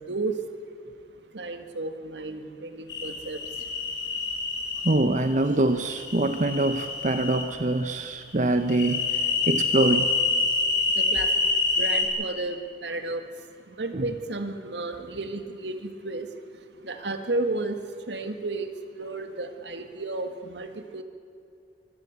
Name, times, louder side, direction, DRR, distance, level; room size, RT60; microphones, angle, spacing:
voice 1, 0.1-0.4 1.3-3.4 11.0-11.3 11.8-13.2 13.7-16.3 16.8-17.7 18.1-20.7 20.9-21.0, right 2 dB, 80° right, 7 dB, 1.9 m, -32 dB
sound 1, 2.9-4.9 5.9-7.4 8.7-12.1, left 3 dB, 85° left, 4.8 m, -26 dB
voice 2, 4.8-9.1 9.5-10.1 13.9-14.0, right 2 dB, 45° right, 8 dB, 0.9 m, -24 dB
24.5 x 15.5 x 8.2 m, 2.6 s
head